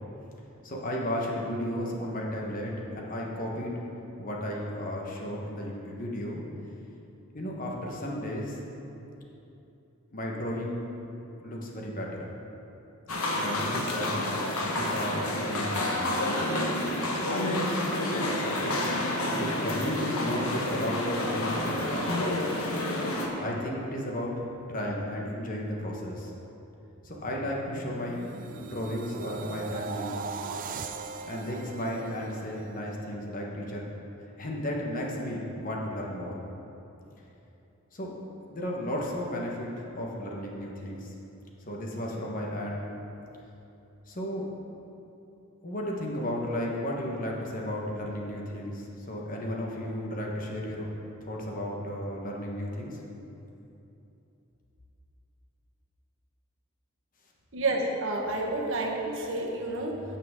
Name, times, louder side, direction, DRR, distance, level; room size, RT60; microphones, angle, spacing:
voice 1, 0.6-3.8 4.2-6.4 7.3-8.6 10.1-10.8 11.4-12.3 13.4-14.2 14.6-16.1 17.1-18.8 19.3-21.9 23.4-24.3 24.7-26.3 27.0-28.2 28.6-30.2 31.2-33.9 34.4-36.4 37.9-38.1 38.5-41.1 41.7-42.9 44.1-44.5 45.6-50.9 51.2-53.0, equal, 40° left, -2 dB, 1.3 m, -34 dB
sound 1, 13.1-23.3, left 1 dB, 75° left, 1.2 m, -29 dB
sound 2, 26.8-33.1 33.5-33.8, right 4 dB, 40° right, 0.4 m, -40 dB
voice 2, 57.5-60.0, right 2 dB, 60° right, -1 dB, 1.2 m, -30 dB
16.0 x 5.8 x 3.7 m, 2.9 s
head